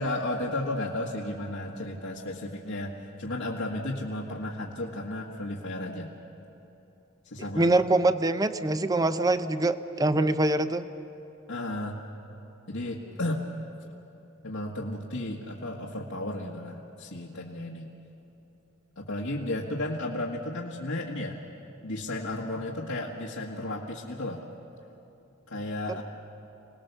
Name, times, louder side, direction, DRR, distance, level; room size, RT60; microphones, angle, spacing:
voice 1, 0.0-2.9 3.2-6.1 7.3-7.7 11.5-12.0 12.7-13.5 14.4-17.9 19.0-21.4 21.8-24.4 25.5-26.0, left 1 dB, 90° left, -4 dB, 1.7 m, -33 dB
voice 2, 7.5-10.9 25.9-26.0, right 2 dB, 20° right, 11 dB, 0.6 m, -24 dB
26.5 x 19.0 x 6.8 m, 3.0 s
head